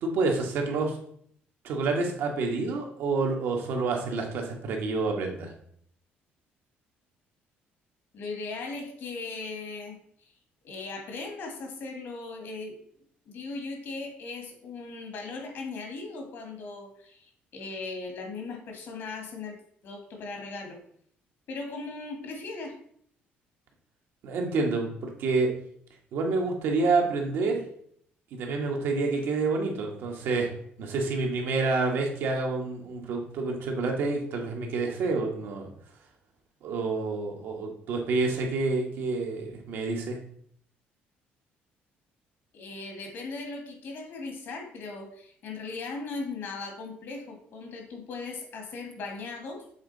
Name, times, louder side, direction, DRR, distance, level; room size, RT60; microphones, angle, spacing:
voice 1, 0.0-1.0 1.6-5.5 24.2-25.5 26.1-27.6 28.3-30.5 30.8-35.7 36.6-40.2, right 3 dB, 70° right, 1 dB, 1.5 m, -28 dB
voice 2, 8.1-10.3 10.6-12.7 13.3-19.6 19.8-20.8 21.5-22.7 42.5-49.6, left 3 dB, 60° left, 3 dB, 1.7 m, -38 dB
7.3 x 3.7 x 4.0 m, 0.64 s
cardioid pair, 120°, 4 cm